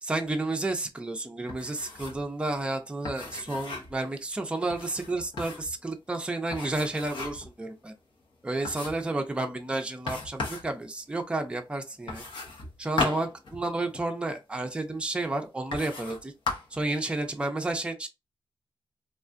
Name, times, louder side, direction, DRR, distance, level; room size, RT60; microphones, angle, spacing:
voice 1, 0.0-7.9 8.4-12.2 12.8-16.3 16.7-18.1, right 2 dB, 10° right, 0.5 m, -31 dB
sound 1, 1.5-2.3 2.5-2.6 3.0-4.0 4.7-5.7 6.5-7.5 8.0-8.1 8.6-9.1 10.1-10.7 12.1-14.1 14.9-15.0 15.7-16.2 16.5-16.8, left 3 dB, 70° left, 0.9 m, -36 dB
3.4 x 2.4 x 2.5 m
wide cardioid pair, 145°, 8 cm